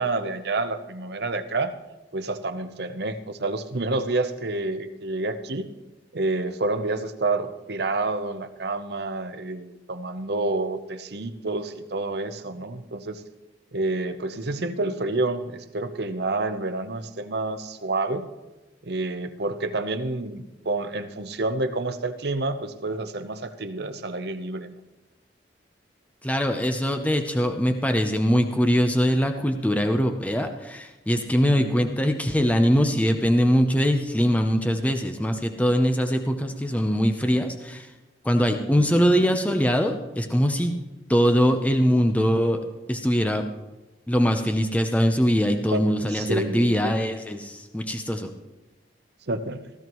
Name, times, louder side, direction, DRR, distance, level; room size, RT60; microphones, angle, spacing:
voice 1, 0.0-1.7 2.1-5.7 6.1-13.2 13.7-18.3 18.8-24.7 31.4-31.7 38.8-38.9 45.7-47.0 49.3-49.6, right 2 dB, 60° right, 8 dB, 0.8 m, -29 dB
voice 2, 26.2-37.9 38.2-40.8 41.1-42.6 42.9-43.4 44.1-48.3, equal, 10° left, 6 dB, 0.7 m, -22 dB
16.0 x 14.0 x 3.1 m, 1.1 s
head